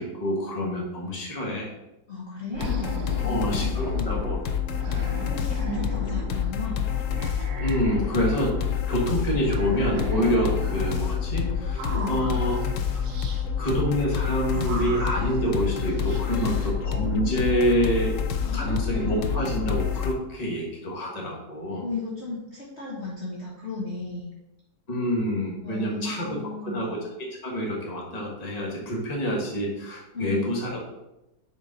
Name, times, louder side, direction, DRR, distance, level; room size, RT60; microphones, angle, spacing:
voice 1, 0.0-1.7 3.2-4.4 7.6-8.6 8.9-12.6 13.6-18.2 18.5-21.8 24.9-26.4 26.6-27.0 27.4-30.8, equal, 25° left, -2 dB, 1.4 m, -27 dB
voice 2, 2.1-2.9 3.2-4.3 5.3-6.8 11.9-12.2 16.3-16.7 18.4-19.5 21.8-24.3 25.6-27.0 30.1-30.6, left 2 dB, 40° left, -6 dB, 1.3 m, -35 dB
sound 1, 2.5-20.1, left 8 dB, 70° left, 0.8 m, -28 dB
sound 2, 2.6-6.5 6.8-8.9 9.4-11.1 11.6-13.4 14.4-16.2, right 2 dB, 65° right, 1.3 m, -37 dB
6.8 x 4.5 x 4.0 m, 0.94 s
omnidirectional pair, 1.9 m